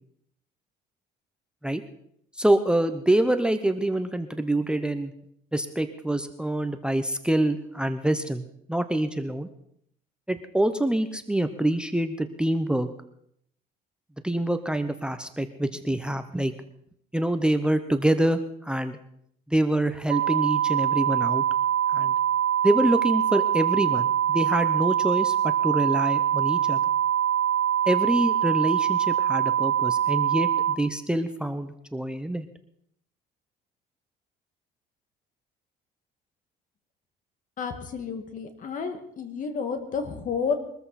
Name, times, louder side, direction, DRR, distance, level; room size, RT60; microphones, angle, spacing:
voice 1, 2.4-5.1 5.5-9.5 10.3-12.9 14.2-16.5 17.1-19.0 19.5-21.4 21.9-22.2 22.6-26.8 27.9-32.5, right 1 dB, 5° right, 8 dB, 0.8 m, -26 dB
sound 1, 20.1-30.8, right 10 dB, 75° right, 0.9 m, -24 dB
voice 2, 37.6-40.5, left 5 dB, 50° left, 7 dB, 2.1 m, -31 dB
22.5 x 14.0 x 4.2 m, 0.71 s
cardioid pair, 110°, 17 cm